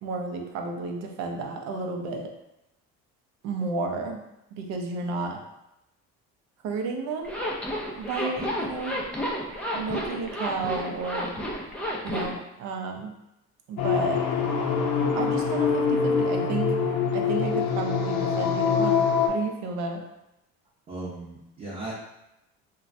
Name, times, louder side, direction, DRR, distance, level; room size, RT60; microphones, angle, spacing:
voice 1, 0.0-2.3 3.4-4.2 4.5-5.4 6.6-7.4 8.0-9.0 9.7-11.3 12.0-13.1 13.7-14.3 15.1-16.7 17.1-19.0 19.3-20.0, right 4 dB, 70° right, 3 dB, 0.6 m, -32 dB
Zipper (clothing), 7.2-12.4, equal, 5° left, 0.3 m, -31 dB
sound 1, 13.8-19.3, left 6 dB, 65° left, 0.5 m, -24 dB
voice 2, 20.9-21.9, right 2 dB, 30° right, -9 dB, 0.7 m, -37 dB
3.1 x 2.2 x 2.5 m, 0.89 s
cardioid pair, 120°, 29 cm